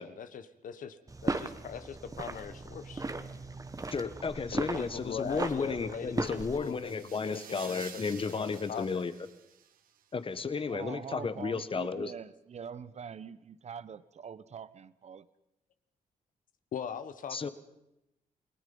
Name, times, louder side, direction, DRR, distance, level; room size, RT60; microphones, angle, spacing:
voice 1, 0.0-3.1 4.5-6.1 6.5-9.0 16.7-17.5, left 8 dB, 70° left, 11 dB, 1.4 m, -41 dB
sound 1, 1.1-6.6, right 3 dB, 25° right, 1.6 m, -37 dB
voice 2, 3.9-9.1 10.1-12.1 17.3-17.5, left 5 dB, 40° left, 12 dB, 1.6 m, -33 dB
sound 2, 6.2-10.0, right 9 dB, 85° right, 1.5 m, -51 dB
voice 3, 10.7-15.3, right 7 dB, 50° right, 16 dB, 1.0 m, -44 dB
28.5 x 20.0 x 5.5 m, 0.86 s
cardioid pair, 80°, 14 cm